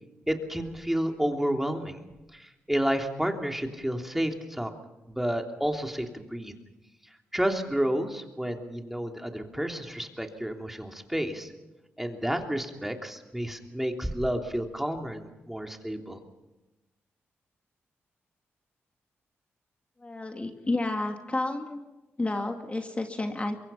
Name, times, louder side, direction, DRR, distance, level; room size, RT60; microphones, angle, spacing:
voice 1, 0.3-2.0 2.3-4.7 5.1-6.5 7.3-11.5 12.0-16.2, equal, 5° right, 3 dB, 3.1 m, -30 dB
voice 2, 20.0-21.8 22.2-23.6, left 2 dB, 25° left, 4 dB, 2.3 m, -30 dB
24.5 x 22.0 x 5.7 m, 1.0 s
cardioid pair, 60°, 5 cm